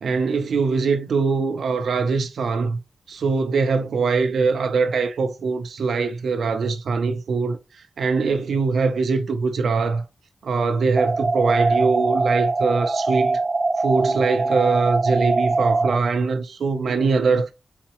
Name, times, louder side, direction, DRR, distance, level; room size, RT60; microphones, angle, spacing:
voice 1, 0.0-2.8 3.1-10.0 10.4-13.4 13.8-17.5, right 4 dB, 90° right, 0.5 m, -22 dB
sound 1, 11.0-16.0, right 3 dB, 30° right, 0.4 m, -22 dB
4.1 x 3.8 x 2.9 m
wide cardioid pair, 125°, 0 cm